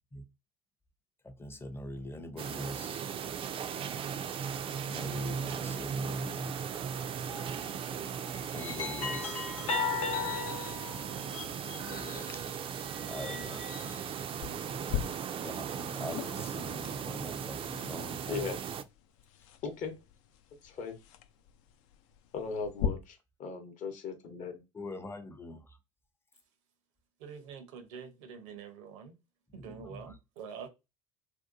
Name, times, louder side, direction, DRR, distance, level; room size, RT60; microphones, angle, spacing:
voice 1, 1.2-3.1 4.9-6.6 8.3-9.5 11.9-12.5 13.1-13.7 14.6-14.8 15.4-18.5 24.7-25.8 29.5-30.0, left 1 dB, 15° left, 0.6 m, -43 dB
sound 1, 2.4-18.8, right 7 dB, 35° right, 0.4 m, -37 dB
sound 2, 7.3-7.6 8.3-12.4 13.0-14.1, left 4 dB, 80° left, 1.0 m, -37 dB
sound 3, 14.4-22.9, left 10 dB, 65° left, 0.4 m, -41 dB
voice 2, 19.6-19.9 20.6-21.0 22.3-24.6, left 5 dB, 50° left, 0.8 m, -38 dB
voice 3, 27.2-29.2 29.5-30.7, right 6 dB, 70° right, 0.7 m, -46 dB
2.7 x 2.2 x 2.5 m
hypercardioid pair, 65°, 17 cm